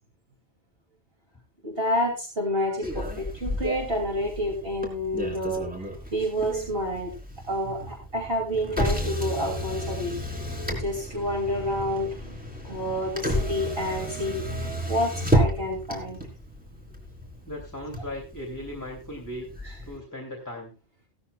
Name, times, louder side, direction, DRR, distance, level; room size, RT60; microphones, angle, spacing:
voice 1, 1.6-7.2 7.5-16.2 19.6-19.8, equal, 60° right, -1 dB, 3.0 m, -29 dB
Motor vehicle (road), 2.8-20.0, equal, 10° right, 3.1 m, -32 dB
voice 2, 17.5-19.5 19.8-20.7, left 1 dB, 15° left, 1 dB, 2.9 m, -37 dB
16.5 x 12.5 x 2.4 m, 0.28 s
omnidirectional pair, 1.1 m